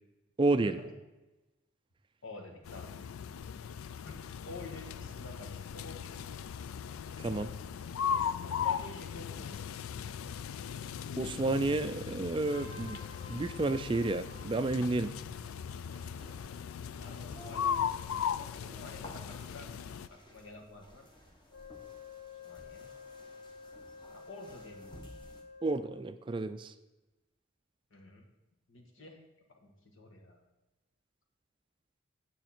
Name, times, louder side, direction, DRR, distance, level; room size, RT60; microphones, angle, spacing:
voice 1, 0.4-0.8 7.2-7.5 11.2-13.0 13.3-15.1 25.6-26.7, right 2 dB, 25° right, 11 dB, 0.3 m, -31 dB
voice 2, 2.2-2.9 4.0-6.2 8.1-9.6 17.0-19.7 20.1-21.0 22.4-22.9 24.1-24.9 27.9-28.3 28.7-29.2 29.5-30.4, left 3 dB, 70° left, 2 dB, 1.7 m, -49 dB
sound 1, 2.6-20.1, left 7 dB, 90° left, 0.4 m, -38 dB
sound 2, 12.5-25.4, left 1 dB, 20° left, 1.2 m, -54 dB
Wind instrument woodwind instrument, 21.5-26.1, left 5 dB, 55° left, 1.2 m, -50 dB
9.1 x 8.0 x 4.4 m, 1.1 s
head